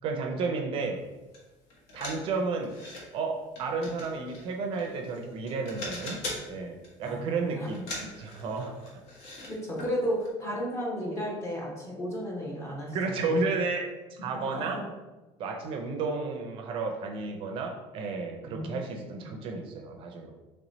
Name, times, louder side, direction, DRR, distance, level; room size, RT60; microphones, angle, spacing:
voice 1, 0.0-1.0 1.9-2.7 3.1-6.2 6.5-8.8 12.9-14.8 15.4-20.3, right 4 dB, 45° right, 3 dB, 0.5 m, -32 dB
sound 1, 1.3-1.4 1.7-3.0 3.5-5.2 5.5-6.5 6.8-7.2 7.7-9.5 9.8-9.9 10.2-10.3, left 2 dB, 60° left, 1.1 m, -40 dB
voice 2, 7.0-7.7 9.5-13.5 14.3-14.6 18.4-19.4, equal, 25° left, -3 dB, 0.9 m, -34 dB
3.2 x 3.0 x 4.0 m, 1.2 s
cardioid pair, 160°, 12 cm